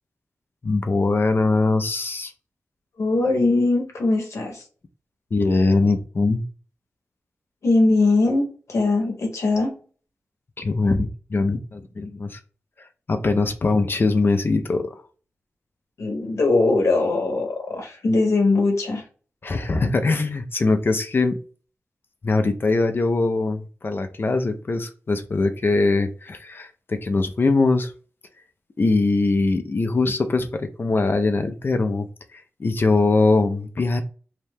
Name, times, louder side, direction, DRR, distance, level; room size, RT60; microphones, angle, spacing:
voice 1, 0.6-2.3 5.3-6.4 10.6-12.4 13.1-15.0 19.4-21.4 22.2-27.9 28.8-32.1 32.3-34.0, left 3 dB, 50° left, 0.4 m, -22 dB
voice 2, 3.0-4.6 7.6-9.7 16.0-19.0, left 2 dB, 80° left, 0.8 m, -21 dB
2.7 x 2.1 x 3.3 m
wide cardioid pair, 65°, 5 cm